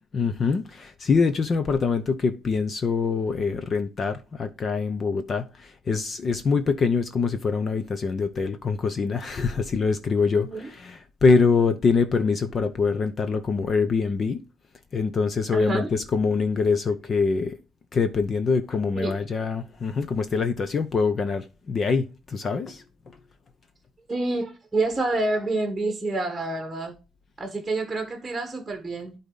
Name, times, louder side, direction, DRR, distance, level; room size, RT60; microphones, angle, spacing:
voice 1, 0.1-14.4 14.9-17.6 17.9-23.2, left 4 dB, 30° left, 0.7 m, -24 dB
voice 2, 10.3-10.7 15.5-15.9 18.9-19.2 24.1-26.9 27.4-29.1, right 2 dB, 10° right, 1.4 m, -28 dB
11.5 x 4.1 x 3.9 m
cardioid pair, 165°, 0 cm